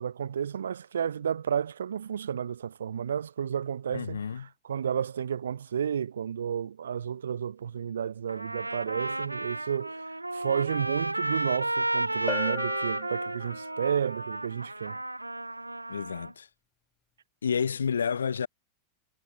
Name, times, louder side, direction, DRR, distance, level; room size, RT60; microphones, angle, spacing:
voice 1, 0.0-4.2 4.6-10.0 10.3-15.0, right 8 dB, 65° right, 1.0 m, -31 dB
voice 2, 3.9-4.5 15.9-16.5 17.4-18.5, left 6 dB, 70° left, 1.0 m, -30 dB
Trumpet, 8.3-16.3, right 2 dB, 85° right, 1.1 m, -33 dB
Bell, 12.3-13.9, left 7 dB, 20° left, 0.3 m, -37 dB
figure-of-eight pair, 90°, 0 cm